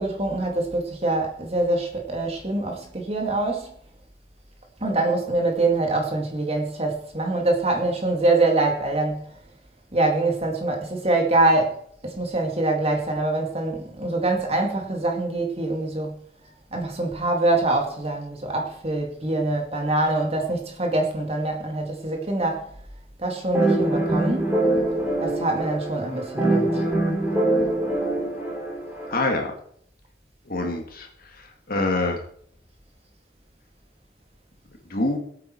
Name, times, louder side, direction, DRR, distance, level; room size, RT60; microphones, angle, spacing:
voice 1, 0.0-3.7 4.8-9.3 9.9-11.8 12.0-16.2 16.7-22.6 23.2-24.6 25.2-26.8, right 2 dB, 30° right, 2.2 m, -24 dB
sound 1, 23.5-29.2, right 1 dB, 10° right, 3.9 m, -24 dB
voice 2, 29.1-29.5 30.5-31.1 31.4-32.2 34.9-35.2, left 2 dB, 50° left, 2.3 m, -25 dB
18.5 x 8.6 x 4.6 m
head